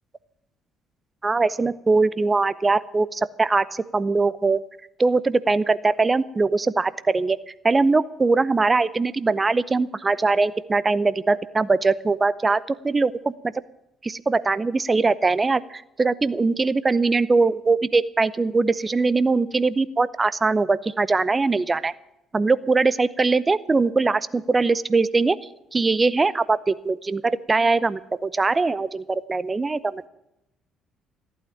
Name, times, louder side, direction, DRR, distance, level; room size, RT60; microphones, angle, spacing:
voice 1, 1.2-4.6 5.0-7.4 7.6-13.3 14.0-21.9 22.3-25.4 25.7-30.1, right 3 dB, 25° right, 17 dB, 0.7 m, -21 dB
15.0 x 8.8 x 8.9 m, 0.84 s
hypercardioid pair, 50°, 0 cm